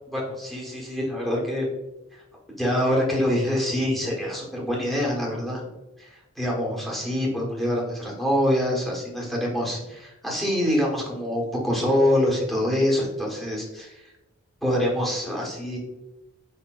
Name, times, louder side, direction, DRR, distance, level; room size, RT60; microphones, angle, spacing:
voice 1, 0.1-1.7 2.1-2.2 2.5-5.7 6.0-14.0 14.6-15.8, left 1 dB, ahead, -3 dB, 1.3 m, -25 dB
4.9 x 4.4 x 2.4 m, 1.0 s
head